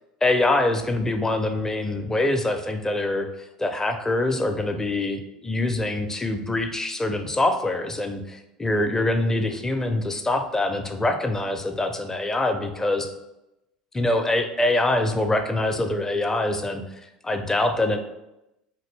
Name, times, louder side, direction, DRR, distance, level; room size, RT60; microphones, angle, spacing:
voice 1, 0.2-3.3 3.6-13.1 13.9-16.8 17.2-18.0, left 2 dB, 15° left, 6 dB, 0.4 m, -24 dB
2.9 x 2.6 x 3.2 m, 0.90 s
hypercardioid pair, 75°, 4 cm